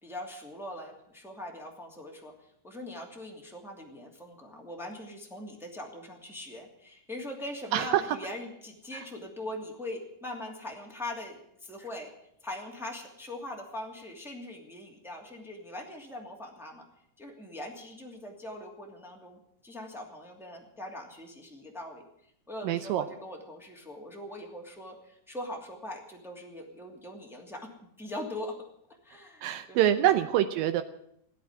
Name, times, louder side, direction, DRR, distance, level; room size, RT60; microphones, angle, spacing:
voice 1, 0.0-2.3 2.6-12.1 12.4-16.8 17.2-22.0 22.5-27.7 28.0-28.5 29.0-30.1, left 1 dB, ahead, 0 dB, 1.2 m, -41 dB
voice 2, 22.6-23.0 29.4-30.8, right 12 dB, 90° right, 9 dB, 2.0 m, -25 dB
15.5 x 9.4 x 9.8 m, 0.73 s
omnidirectional pair, 5.0 m